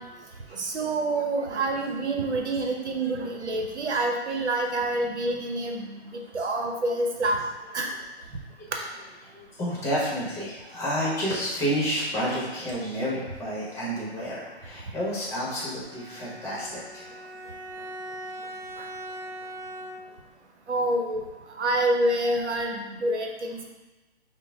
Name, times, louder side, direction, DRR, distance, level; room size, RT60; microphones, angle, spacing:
voice 1, 0.6-5.9 6.3-7.4 7.7-7.9 20.7-21.2 21.6-23.7, right 2 dB, 85° right, 2 dB, 0.9 m, -27 dB
voice 2, 1.5-1.8 6.4-6.5 6.9-7.0 8.8-8.9 9.2-17.1, equal, 10° left, -6 dB, 0.9 m, -30 dB
Bowed string instrument, 15.8-20.3, right 1 dB, 60° right, 0.7 m, -40 dB
5.7 x 2.2 x 3.5 m, 1.2 s
hypercardioid pair, 140°, 34 cm